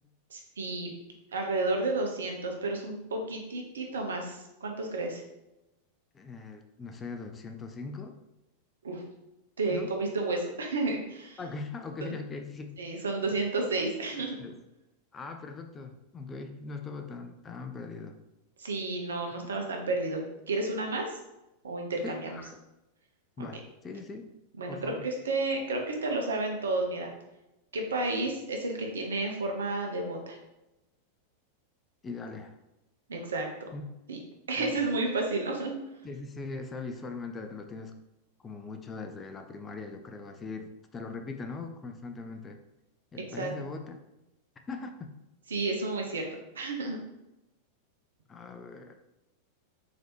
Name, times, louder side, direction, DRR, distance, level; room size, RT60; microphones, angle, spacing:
voice 1, 0.3-0.9 1.3-5.2 8.8-9.0 9.6-11.4 12.8-14.4 18.6-21.1 21.6-22.4 23.4-23.5 24.6-27.1 27.7-30.4 33.1-33.5 34.1-34.2 34.5-35.8 43.4-43.5 45.5-46.3 46.5-47.0, right 2 dB, 65° right, 2 dB, 0.7 m, -31 dB
voice 2, 6.1-8.2 9.7-9.9 11.4-13.0 14.4-14.6 15.1-18.2 22.0-22.6 23.4-24.3 24.7-25.1 32.0-32.6 33.7-33.8 34.6-34.9 36.0-38.0 38.4-42.6 43.1-44.0 44.7-45.1 48.3-48.9, left 4 dB, 20° left, 6 dB, 0.4 m, -40 dB
3.9 x 3.1 x 3.1 m, 0.93 s
figure-of-eight pair, 90°, 0 cm